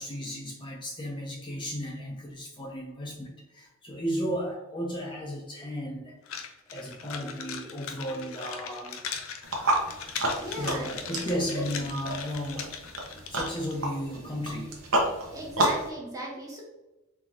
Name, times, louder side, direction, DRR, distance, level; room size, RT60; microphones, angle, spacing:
voice 1, 0.0-6.1 6.7-9.0 10.5-12.8 13.3-14.8, equal, 25° left, -2 dB, 0.7 m, -34 dB
sound 1, 6.3-13.8, left 6 dB, 75° left, 0.6 m, -39 dB
sound 2, 9.4-15.9, right 1 dB, 80° right, 1.1 m, -31 dB
voice 2, 10.4-11.1 11.5-11.6 15.3-16.6, right 1 dB, 15° right, -4 dB, 1.2 m, -37 dB
4.0 x 3.6 x 2.9 m, 1.0 s
head